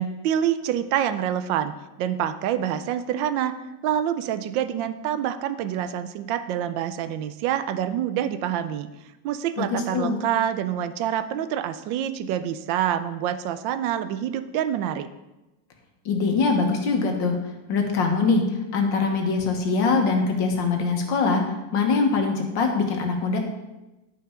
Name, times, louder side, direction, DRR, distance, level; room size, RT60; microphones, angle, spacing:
voice 1, 0.0-1.7 2.0-3.6 3.8-8.9 9.2-15.1, right 10 dB, 85° right, 11 dB, 1.3 m, -26 dB
voice 2, 9.6-10.2 16.1-17.4 17.7-21.4 21.7-23.4, left 4 dB, 80° left, 3 dB, 1.9 m, -23 dB
11.0 x 5.6 x 4.4 m, 1.0 s
omnidirectional pair, 2.0 m